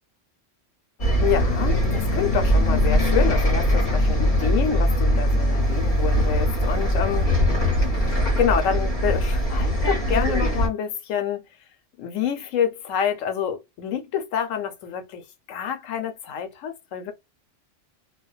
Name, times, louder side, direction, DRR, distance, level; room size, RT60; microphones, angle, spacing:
voice 1, 1.0-7.3 7.9-11.4 12.0-17.1, left 8 dB, 90° left, 1.0 m, -27 dB
Bus, 1.0-10.7, equal, 35° left, 1.1 m, -21 dB
2.5 x 2.2 x 2.3 m
omnidirectional pair, 1.3 m